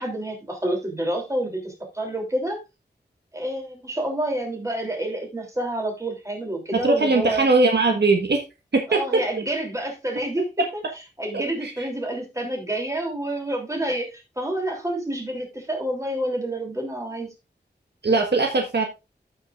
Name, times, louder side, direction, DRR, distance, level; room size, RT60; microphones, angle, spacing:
voice 1, 0.0-2.6 3.3-7.5 8.9-10.8 11.2-17.3, right 1 dB, 15° right, 0 dB, 3.1 m, -28 dB
voice 2, 6.7-8.4 8.7-9.2 10.6-10.7 11.3-11.9 18.0-18.8, right 3 dB, 70° right, 3 dB, 1.5 m, -20 dB
15.0 x 5.7 x 2.5 m, 0.26 s
wide cardioid pair, 85°, 18 cm